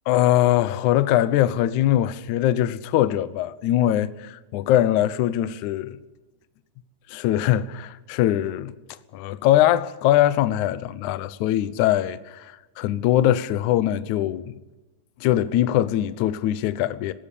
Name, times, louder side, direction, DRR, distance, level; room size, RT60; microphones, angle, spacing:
voice 1, 0.1-6.0 7.1-8.7 9.1-14.6 15.2-17.1, left 13 dB, 85° left, 1.7 m, -22 dB
22.0 x 17.5 x 6.9 m
omnidirectional pair, 4.6 m